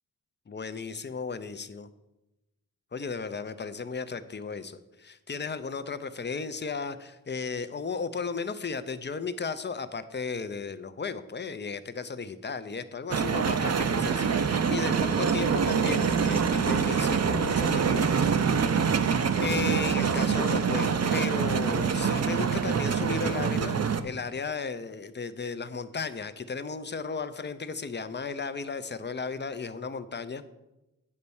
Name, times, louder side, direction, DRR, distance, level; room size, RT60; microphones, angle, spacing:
voice 1, 0.5-1.9 2.9-18.5 19.4-30.4, left 5 dB, 30° left, 11 dB, 0.5 m, -35 dB
sound 1, 13.1-24.0, right 6 dB, 45° right, 0.5 m, -25 dB
9.5 x 4.2 x 7.0 m, 0.97 s
wide cardioid pair, 125°, 36 cm